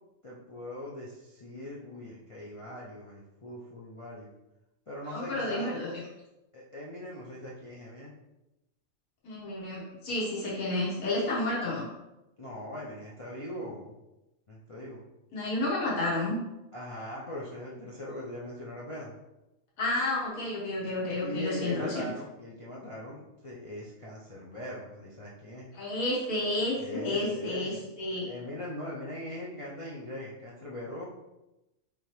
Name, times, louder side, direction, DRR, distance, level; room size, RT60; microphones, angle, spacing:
voice 1, 0.2-4.3 4.9-5.7 6.5-8.1 12.4-14.0 14.5-15.0 16.7-19.1 21.2-25.7 26.8-27.8 28.2-31.1, equal, 50° left, -6 dB, 0.4 m, -41 dB
voice 2, 5.1-5.9 9.2-11.9 15.3-16.4 19.8-22.1 25.7-28.3, left 2 dB, 80° left, -6 dB, 1.6 m, -31 dB
5.1 x 2.9 x 3.1 m, 0.96 s
omnidirectional pair, 1.5 m